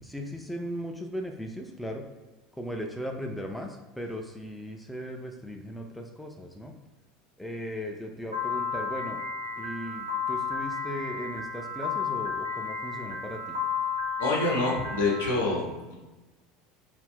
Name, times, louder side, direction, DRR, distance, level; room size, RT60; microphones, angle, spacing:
voice 1, 0.0-2.1 2.6-6.7 7.4-9.2 9.6-13.6, equal, ahead, 2 dB, 0.3 m, -37 dB
Piano, 8.3-15.3, left 5 dB, 85° right, 0.6 m, -32 dB
voice 2, 14.2-16.0, left 2 dB, 70° left, -2 dB, 0.8 m, -27 dB
2.4 x 2.0 x 3.4 m, 1.1 s
figure-of-eight pair, 75°, 0 cm